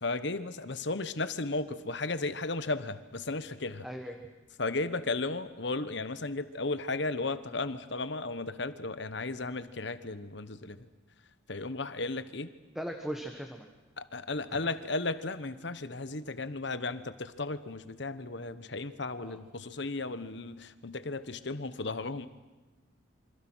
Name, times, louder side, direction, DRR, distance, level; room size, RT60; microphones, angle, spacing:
voice 1, 0.0-3.9 4.6-10.9 11.5-12.5 14.0-22.3, left 3 dB, 60° left, 12 dB, 1.2 m, -35 dB
voice 2, 3.8-4.2 12.7-13.7 19.2-19.4, equal, ahead, 4 dB, 1.4 m, -38 dB
27.5 x 25.0 x 6.3 m, 1.2 s
head